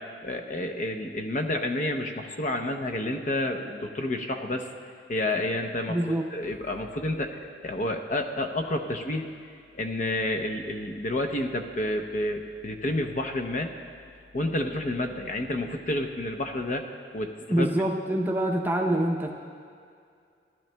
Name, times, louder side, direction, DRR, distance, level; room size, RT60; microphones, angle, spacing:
voice 1, 0.0-4.7 5.1-6.0 6.3-9.3 9.8-13.7 14.3-16.9 17.1-17.7, left 1 dB, 40° left, 4 dB, 0.6 m, -30 dB
voice 2, 5.9-6.3 17.5-19.3, right 1 dB, 10° right, 1 dB, 0.6 m, -25 dB
16.5 x 11.5 x 2.2 m, 2.3 s
head